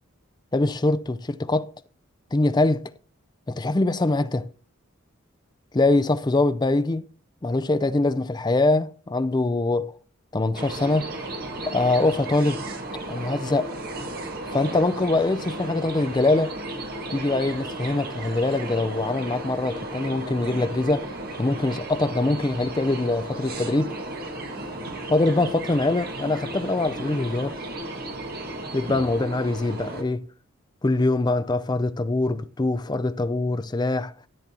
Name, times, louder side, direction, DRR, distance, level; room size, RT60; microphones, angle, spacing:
voice 1, 0.5-1.7 2.3-2.9 3.5-4.5 5.7-7.1 7.4-9.9 10.3-11.1 11.7-12.6 13.1-13.7 14.5-16.6 17.1-21.1 21.4-23.9 25.1-27.6 28.7-30.2 30.8-34.1, left 2 dB, 20° left, 0.4 m, -23 dB
sound 1, 10.5-30.0, right 1 dB, 45° right, 1.6 m, -34 dB
14.0 x 7.6 x 2.9 m
head